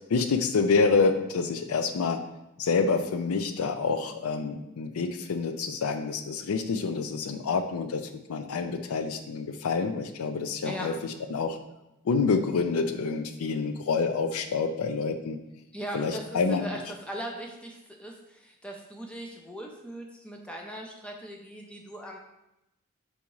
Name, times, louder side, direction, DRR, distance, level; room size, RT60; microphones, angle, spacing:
voice 1, 0.1-2.2 2.6-10.9 11.3-11.6 12.0-15.4 15.9-16.6, left 4 dB, 85° left, 8 dB, 0.4 m, -27 dB
voice 2, 15.7-22.2, right 1 dB, 5° left, 1 dB, 0.5 m, -39 dB
4.0 x 3.6 x 3.0 m, 0.91 s
head